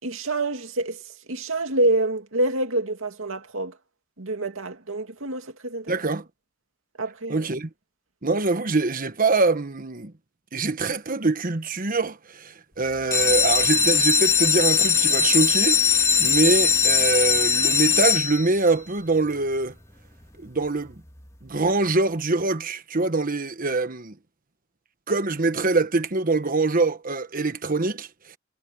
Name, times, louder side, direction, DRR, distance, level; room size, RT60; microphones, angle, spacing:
voice 1, 0.0-1.0 1.3-3.8 4.2-5.9 7.0-7.5, right 2 dB, 75° right, 2.5 m, -27 dB
voice 2, 5.9-6.3 7.3-7.7 8.2-10.1 10.5-19.7 20.4-21.0 21.4-24.1 25.1-28.4, right 3 dB, 45° right, 1.3 m, -24 dB
sound 1, 13.0-18.7 19.3-19.8 20.2-20.3 20.6-20.7 21.1-21.2, left 6 dB, 15° left, 2.0 m, -20 dB
head